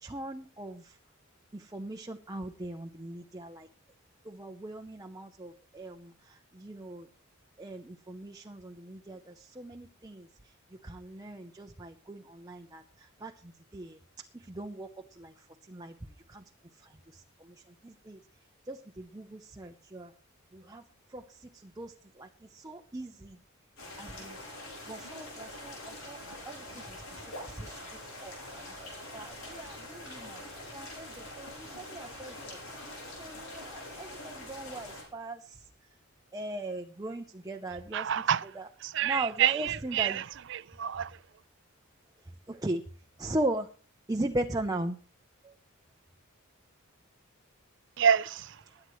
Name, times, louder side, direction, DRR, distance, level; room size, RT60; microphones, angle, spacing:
voice 1, 0.0-0.8 1.5-3.7 4.3-6.1 6.6-7.0 7.6-10.3 10.8-12.8 13.2-13.3 13.7-14.0 14.5-14.9 15.2-15.3 15.7-15.9 16.3-16.4 17.8-18.2 18.7-20.1 20.5-20.8 21.1-21.2 21.8-21.9 22.2-22.3 22.5-23.4 24.0-24.4 24.9-27.0 27.6-27.7 28.2-30.4 30.7-32.6 33.2-35.4 36.3-38.2 38.5-38.7 39.0-40.2 42.5-42.8 43.2-43.7 44.1-45.0, right 1 dB, 15° right, 0.7 m, -38 dB
sound 1, 23.8-35.0, left 1 dB, 80° left, 7.7 m, -44 dB
voice 2, 37.9-38.4 38.9-40.2 40.5-41.1 48.0-48.4, right 9 dB, 55° right, 0.5 m, -27 dB
21.0 x 9.7 x 3.1 m
head